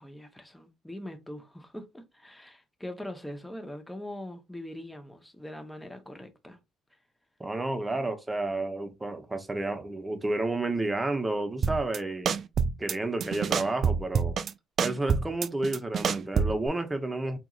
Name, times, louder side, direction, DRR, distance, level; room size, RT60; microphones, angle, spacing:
voice 1, 0.0-6.6 7.9-8.0, left 1 dB, 5° left, 0.9 m, -42 dB
voice 2, 7.4-12.4 12.8-14.4 14.8-17.4, right 2 dB, 20° right, 0.9 m, -31 dB
sound 1, 11.6-12.0 12.3-12.9 13.2-14.5 14.8-16.7, right 6 dB, 55° right, 0.3 m, -26 dB
3.5 x 2.9 x 2.4 m
supercardioid pair, 70°, 0 cm